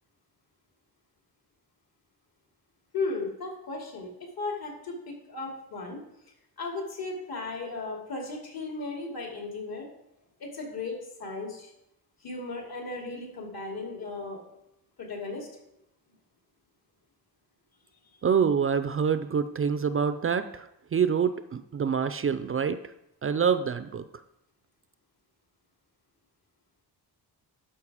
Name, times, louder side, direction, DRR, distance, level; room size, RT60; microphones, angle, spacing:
voice 1, 2.9-6.0 6.6-9.9 10.4-11.7 12.2-14.4 15.0-15.5, left 3 dB, 65° left, 0 dB, 2.9 m, -36 dB
voice 2, 18.2-22.8 23.2-24.0, right 6 dB, 35° right, 12 dB, 0.4 m, -26 dB
12.0 x 5.8 x 4.9 m, 0.84 s
wide cardioid pair, 135°, 39 cm